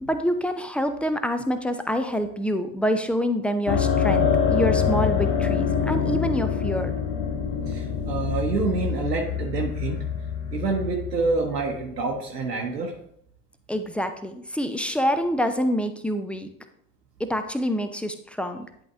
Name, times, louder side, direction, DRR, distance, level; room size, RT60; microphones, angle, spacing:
voice 1, 0.0-6.9 13.7-16.5 17.2-18.7, equal, 5° left, 8 dB, 0.5 m, -26 dB
sound 1, 3.7-12.0, left 7 dB, 60° left, 1.0 m, -25 dB
voice 2, 7.7-10.1 10.5-13.0, right 4 dB, 80° right, 0 dB, 0.9 m, -27 dB
10.5 x 3.7 x 3.4 m, 0.71 s
figure-of-eight pair, 55°, 48 cm